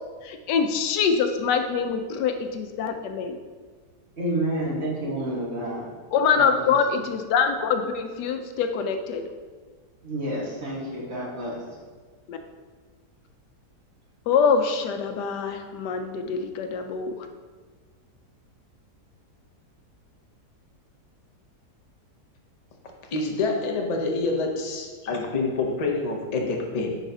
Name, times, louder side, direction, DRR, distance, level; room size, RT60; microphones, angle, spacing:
voice 1, 0.3-3.4 6.1-9.2 12.3-12.4 14.3-17.1, left 6 dB, 90° left, 7 dB, 1.2 m, -24 dB
voice 2, 4.2-5.9 6.3-7.0 10.0-11.6, right 1 dB, 40° right, -5 dB, 1.6 m, -30 dB
voice 3, 23.1-27.0, left 3 dB, 55° left, 1 dB, 0.4 m, -27 dB
9.8 x 4.0 x 2.8 m, 1.5 s
omnidirectional pair, 1.8 m